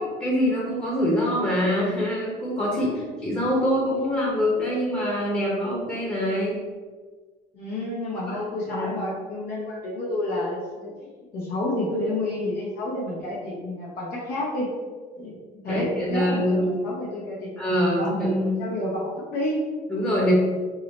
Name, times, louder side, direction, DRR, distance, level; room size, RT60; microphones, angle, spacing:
voice 1, 0.0-2.9 3.2-6.6 8.3-8.4 8.7-8.9 15.7-16.6 17.6-18.3 19.9-20.3, equal, 15° left, -5 dB, 0.9 m, -24 dB
voice 2, 2.7-3.1 7.5-14.7 15.2-15.4 15.6-17.6 18.0-19.6 20.2-20.3, left 1 dB, 65° left, -5 dB, 0.9 m, -29 dB
3.7 x 2.0 x 4.1 m, 1.4 s
cardioid pair, 110°, 17 cm